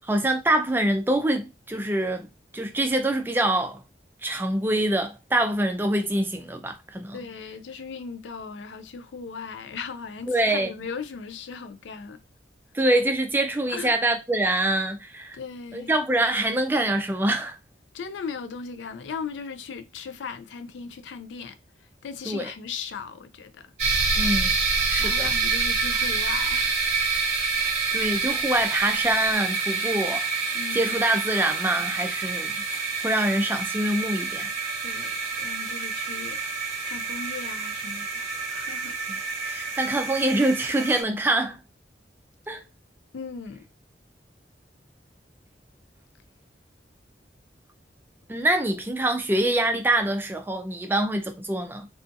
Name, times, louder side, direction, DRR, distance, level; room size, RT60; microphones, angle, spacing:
voice 1, 0.1-2.3 2.5-3.8 4.2-7.2 10.3-10.7 12.7-15.4 15.7-17.6 22.3-22.5 24.2-24.5 24.9-25.3 27.6-32.6 33.0-34.5 39.4-41.6 42.5-42.6 48.3-51.9, right 1 dB, 10° right, 0.3 m, -25 dB
voice 2, 7.1-12.2 13.7-14.0 15.3-16.0 17.9-23.7 25.0-26.8 30.5-31.0 34.8-36.4 36.8-39.0 43.1-43.6, left 5 dB, 85° left, 0.4 m, -37 dB
sound 1, 23.8-41.0, right 4 dB, 40° right, 0.7 m, -27 dB
2.5 x 2.4 x 2.5 m
head